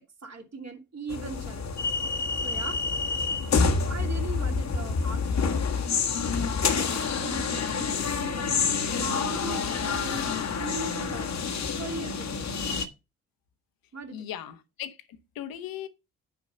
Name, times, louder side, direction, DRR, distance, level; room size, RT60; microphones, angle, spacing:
voice 1, 0.2-2.2 2.4-3.2 3.6-5.9 6.7-8.5 8.9-12.4 13.9-14.3, right 3 dB, 45° right, 2.6 m, -40 dB
sound 1, 1.1-12.9, left 5 dB, 45° left, 1.3 m, -28 dB
voice 2, 14.1-15.9, left 11 dB, 65° left, 1.2 m, -38 dB
9.6 x 5.2 x 4.0 m
hypercardioid pair, 40°, 38 cm